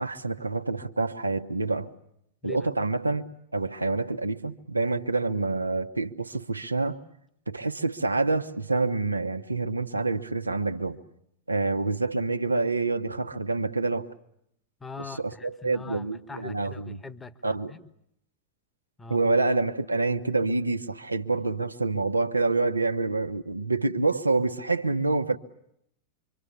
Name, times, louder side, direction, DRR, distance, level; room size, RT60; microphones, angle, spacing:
voice 1, 0.0-1.9 2.4-7.0 7.5-11.0 11.5-14.1 15.4-17.0 17.4-17.7 19.1-25.4, right 3 dB, 80° right, 1.4 m, -27 dB
voice 2, 14.8-17.9 19.0-19.3, left 3 dB, 15° left, 1.4 m, -42 dB
26.5 x 25.5 x 8.3 m
figure-of-eight pair, 90°, 0 cm